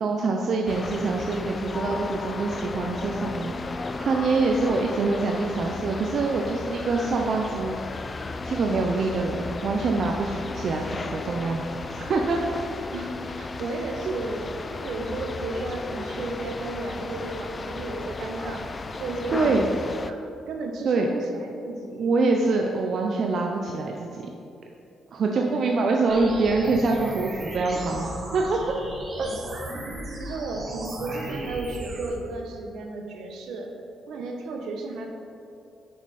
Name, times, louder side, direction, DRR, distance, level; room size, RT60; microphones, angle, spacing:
voice 1, 0.0-7.8 8.4-12.4 14.1-14.2 19.3-19.6 20.9-21.1 22.0-24.3 25.1-28.8 29.2-29.3, right 3 dB, 60° right, 1 dB, 0.5 m, -25 dB
sound 1, 0.7-20.1, left 3 dB, 35° left, 0.4 m, -35 dB
voice 2, 12.9-18.7 19.0-19.8 20.1-20.2 20.5-22.1 25.2-25.7 29.2-29.4 30.2-33.7 34.1-35.1, right 2 dB, 75° right, 3 dB, 0.9 m, -34 dB
sound 2, 26.1-32.1, right 1 dB, 40° right, 1.2 m, -36 dB
7.0 x 5.2 x 4.2 m, 2.7 s
cardioid pair, 80°, 0 cm